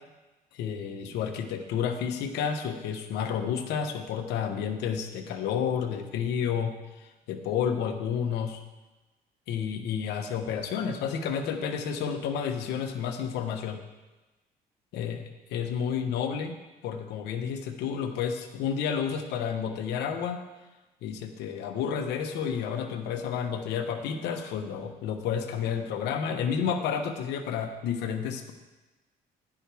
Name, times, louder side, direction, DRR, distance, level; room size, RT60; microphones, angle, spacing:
voice 1, 0.5-8.6 9.5-13.8 14.9-16.5 16.8-20.4 21.0-28.5, left 7 dB, 85° left, 6 dB, 1.2 m, -31 dB
11.0 x 10.5 x 3.5 m, 1.1 s
cardioid pair, 110°, 17 cm